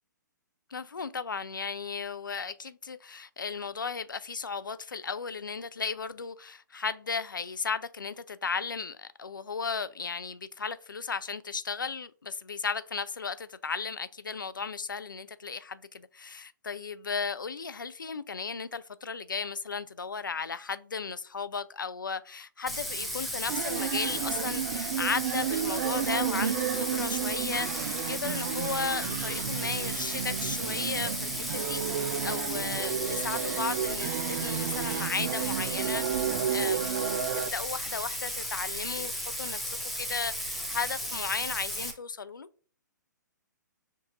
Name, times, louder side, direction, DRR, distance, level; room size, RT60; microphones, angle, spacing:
voice 1, 0.7-37.0 37.3-42.5, left 5 dB, 85° left, 0.4 m, -35 dB
Bathtub (filling or washing), 22.7-41.9, equal, ahead, 0.6 m, -35 dB
sound 1, 23.5-37.5, right 9 dB, 50° right, 0.4 m, -32 dB
5.8 x 2.5 x 2.9 m
figure-of-eight pair, 120°, 10 cm